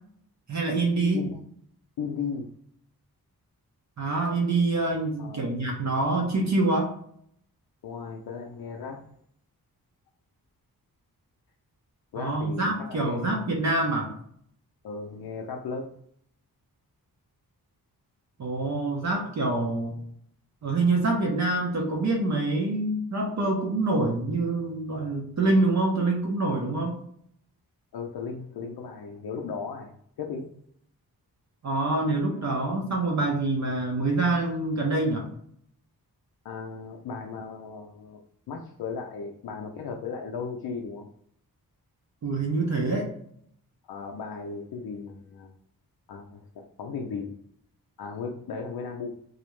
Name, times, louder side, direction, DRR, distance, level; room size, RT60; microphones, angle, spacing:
voice 1, 0.5-1.3 4.0-6.9 12.2-14.1 18.4-20.0 20.6-27.0 31.6-35.3 42.2-43.1, right 2 dB, 50° right, 0 dB, 0.6 m, -26 dB
voice 2, 2.0-2.5 5.2-5.6 7.8-9.1 12.1-13.4 14.8-15.9 27.9-30.5 36.4-38.2 38.5-41.1 43.9-45.5 46.1-47.4 48.0-49.2, left 5 dB, 75° left, 1 dB, 0.5 m, -36 dB
2.4 x 2.0 x 2.9 m, 0.66 s
wide cardioid pair, 90°, 37 cm